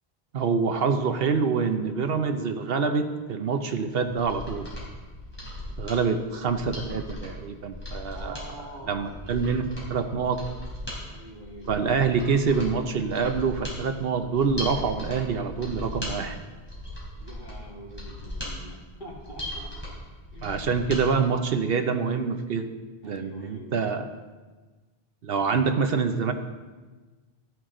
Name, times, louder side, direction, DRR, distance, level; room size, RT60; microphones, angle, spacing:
voice 1, 0.3-4.7 5.8-8.4 8.9-9.6 9.9-10.4 11.7-16.4 20.4-22.7 23.0-24.0 25.2-26.3, right 5 dB, 70° right, 8 dB, 0.9 m, -26 dB
Mechanisms, 4.1-21.0 21.4-21.5, left 1 dB, 10° left, 3.5 m, -38 dB
voice 2, 8.1-9.3 11.1-11.8 17.1-19.9 20.3-20.7 23.0-23.9, equal, 50° left, -2 dB, 2.2 m, -45 dB
13.5 x 9.3 x 3.8 m, 1.3 s
omnidirectional pair, 1.0 m